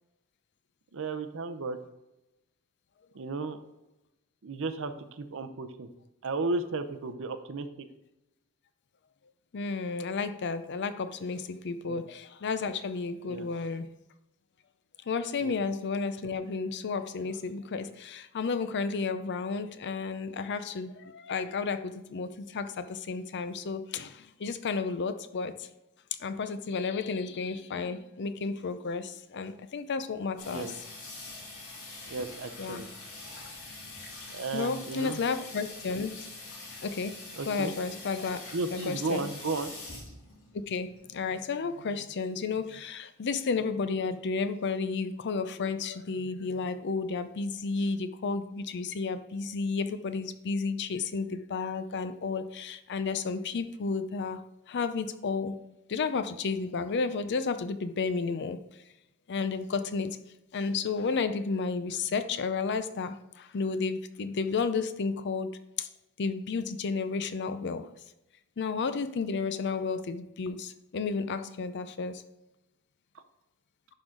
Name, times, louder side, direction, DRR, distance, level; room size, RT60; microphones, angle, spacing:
voice 1, 0.9-1.8 3.1-3.6 4.4-5.9 6.2-7.7 11.8-12.0 13.3-13.5 15.4-15.5 30.4-30.7 32.1-32.9 34.3-35.2 37.4-37.7 38.5-39.7, right 3 dB, 65° right, 9 dB, 0.6 m, -34 dB
voice 2, 9.5-13.9 15.1-25.7 26.2-30.8 32.6-32.8 33.4-33.5 34.2-36.1 36.7-37.2 37.4-38.4 38.7-39.3 40.7-54.4 54.7-55.6 55.9-58.6 59.3-60.2 60.5-65.5 65.8-65.9 66.2-67.9 68.6-72.2, left 4 dB, 50° left, 11 dB, 0.5 m, -32 dB
Water tap faucet / Sink (filling or washing), 30.4-41.3, left 2 dB, 70° left, 2.4 m, -45 dB
11.0 x 3.9 x 3.7 m, 0.91 s
head